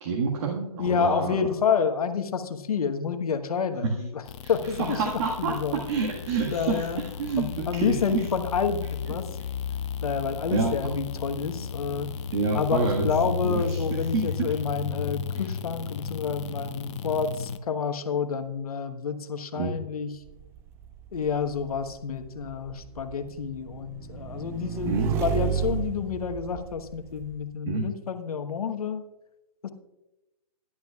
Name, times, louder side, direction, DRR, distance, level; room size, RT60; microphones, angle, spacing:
voice 1, 0.0-1.4 3.8-3.9 4.4-4.5 4.8-8.2 10.5-10.8 12.3-14.5 15.3-15.4 19.5-19.8 24.8-25.1 27.7-27.9, right 4 dB, 45° right, 1 dB, 1.7 m, -28 dB
voice 2, 0.8-4.2 4.5-6.1 6.5-7.0 7.4-9.3 10.0-12.1 12.5-20.2 21.1-29.0 29.6-29.7, left 6 dB, 70° left, 8 dB, 1.2 m, -29 dB
sound 1, 4.2-17.6, left 6 dB, 50° left, 0.7 m, -34 dB
Motorcycle / Engine, 20.3-27.4, right 8 dB, 10° right, 0.4 m, -33 dB
16.5 x 11.5 x 2.4 m, 0.96 s
hypercardioid pair, 145°, 19 cm